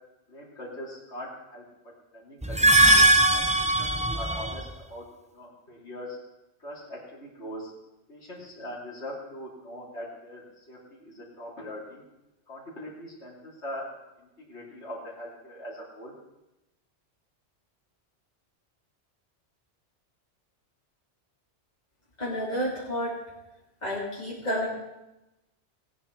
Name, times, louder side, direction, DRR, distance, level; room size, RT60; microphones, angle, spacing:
voice 1, 0.3-1.6 2.1-6.2 6.6-7.7 8.1-12.0 12.5-13.9 14.2-16.1, left 1 dB, 75° left, -5 dB, 3.4 m, -41 dB
sound 1, 2.4-4.7, right 1 dB, 10° right, 0.4 m, -20 dB
voice 2, 22.2-23.2 23.8-24.7, equal, 40° left, -8 dB, 2.9 m, -30 dB
17.0 x 9.8 x 4.6 m, 0.95 s
omnidirectional pair, 1.2 m